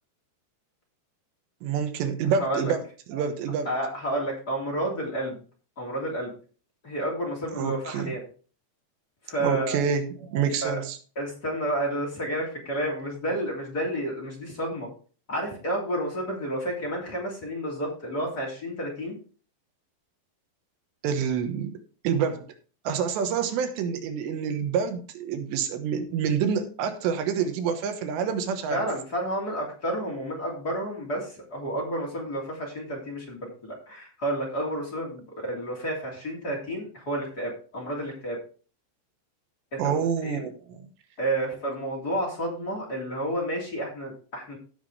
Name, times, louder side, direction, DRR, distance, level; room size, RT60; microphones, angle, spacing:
voice 1, 1.6-2.8 3.1-3.7 7.5-8.1 9.4-11.0 21.0-21.8 22.0-22.5 22.8-28.9 39.8-40.9, right 7 dB, 80° right, 8 dB, 3.4 m, -27 dB
voice 2, 2.4-2.7 3.6-5.4 5.8-6.3 6.8-8.2 9.3-9.8 10.6-10.8 11.1-14.9 15.3-19.2 28.7-38.4 39.7-40.4 41.2-44.6, right 1 dB, 25° left, -2 dB, 3.0 m, -30 dB
16.0 x 5.9 x 3.3 m, 0.38 s
omnidirectional pair, 5.0 m